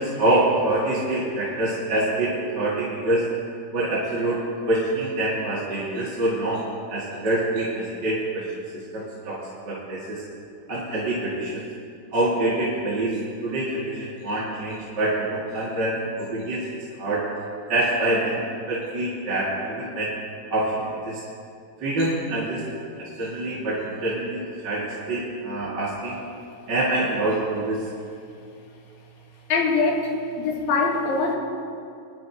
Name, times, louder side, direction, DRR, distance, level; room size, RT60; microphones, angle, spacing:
voice 1, 0.0-3.2 3.7-6.6 6.9-8.4 8.9-9.4 9.6-10.2 10.7-11.6 12.1-13.2 13.4-17.2 17.7-18.4 18.7-20.1 20.5-21.2 21.8-22.6 23.0-26.2 26.7-27.8, right 1 dB, 35° right, -8 dB, 2.1 m, -25 dB
voice 2, 29.5-31.4, left 3 dB, 75° left, 0 dB, 3.2 m, -23 dB
23.0 x 11.5 x 2.8 m, 2.4 s
omnidirectional pair, 4.2 m